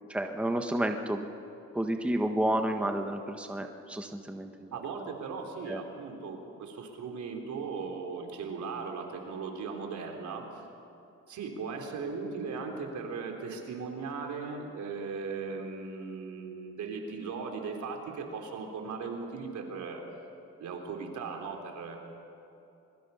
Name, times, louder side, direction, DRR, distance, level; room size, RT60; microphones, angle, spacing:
voice 1, 0.1-1.3 1.7-4.7 5.7-5.8, right 1 dB, 5° right, 4 dB, 1.4 m, -30 dB
voice 2, 4.7-10.7 11.3-20.0 20.6-22.0, right 5 dB, 75° right, 2 dB, 3.7 m, -38 dB
26.0 x 22.0 x 5.7 m, 2.9 s
cardioid pair, 90°, 30 cm